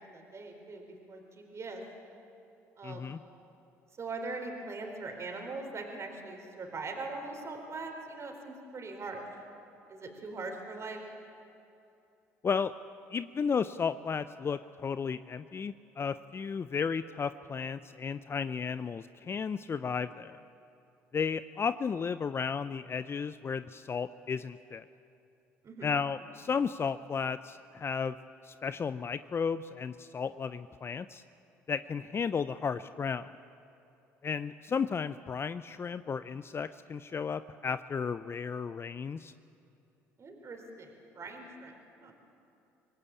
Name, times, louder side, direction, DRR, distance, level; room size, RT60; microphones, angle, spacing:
voice 1, 0.0-1.8 2.8-3.1 4.0-9.2 9.9-11.0 25.6-25.9 40.2-41.7 42.0-42.1, right 3 dB, 40° right, 3 dB, 4.4 m, -41 dB
voice 2, 2.8-3.2 12.4-12.7 13.1-20.4 21.1-24.8 25.8-28.2 28.4-31.2 31.7-33.3 34.2-39.3, left 6 dB, 35° left, 13 dB, 0.6 m, -34 dB
25.5 x 18.0 x 8.6 m, 2.8 s
hypercardioid pair, 65°, 7 cm